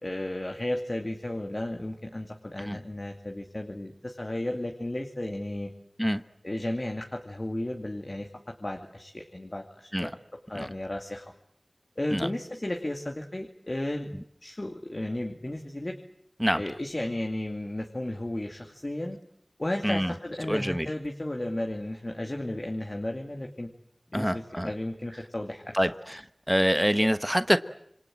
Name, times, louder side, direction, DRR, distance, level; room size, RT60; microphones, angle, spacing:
voice 1, 0.0-5.7 6.4-8.3 8.6-10.1 10.5-11.3 12.0-14.1 14.4-16.0 16.5-19.2 19.6-23.7 24.1-25.9, left 1 dB, 50° left, 3 dB, 2.4 m, -34 dB
voice 2, 20.5-20.9 24.1-24.7 25.7-25.9 26.5-27.6, equal, ahead, 11 dB, 1.2 m, -25 dB
27.5 x 25.5 x 7.6 m, 0.73 s
wide cardioid pair, 40°, 0 cm